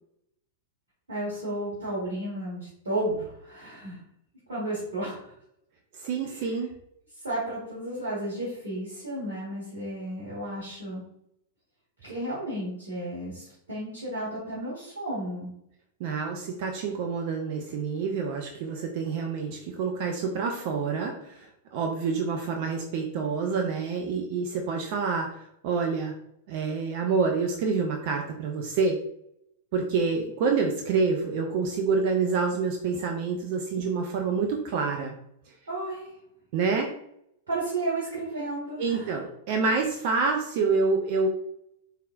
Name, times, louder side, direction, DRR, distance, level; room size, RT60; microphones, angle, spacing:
voice 1, 1.1-4.0 4.5-5.3 6.2-6.5 7.2-11.0 12.0-15.5 35.7-36.1 37.5-39.1, right 1 dB, 70° right, -9 dB, 1.6 m, -33 dB
voice 2, 5.9-6.7 16.0-26.1 26.5-29.0 29.7-35.1 36.5-36.9 38.8-41.3, right 4 dB, 45° right, 2 dB, 0.5 m, -27 dB
4.1 x 3.7 x 2.5 m, 0.76 s
figure-of-eight pair, 95°, 0 cm